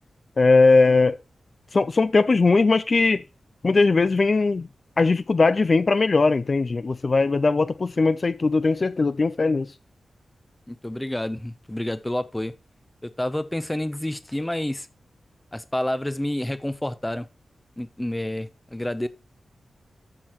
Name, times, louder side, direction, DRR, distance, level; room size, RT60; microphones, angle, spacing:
voice 1, 0.4-1.2 1.7-3.2 3.6-4.7 5.0-9.7, left 3 dB, 40° left, 0.4 m, -19 dB
voice 2, 10.7-12.5 13.0-14.9 15.5-17.3 17.8-19.1, left 1 dB, 10° left, 0.7 m, -29 dB
13.0 x 6.4 x 3.1 m
wide cardioid pair, 105°, 0 cm